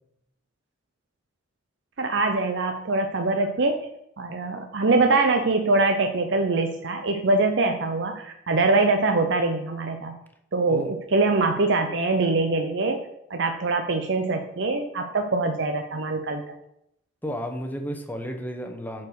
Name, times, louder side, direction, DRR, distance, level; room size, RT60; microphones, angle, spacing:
voice 1, 2.0-3.8 4.2-10.2 10.5-13.0 13.3-16.4, right 3 dB, 65° right, 5 dB, 0.7 m, -23 dB
voice 2, 17.2-19.1, equal, 10° left, 4 dB, 1.0 m, -32 dB
8.4 x 4.6 x 6.4 m, 0.77 s
head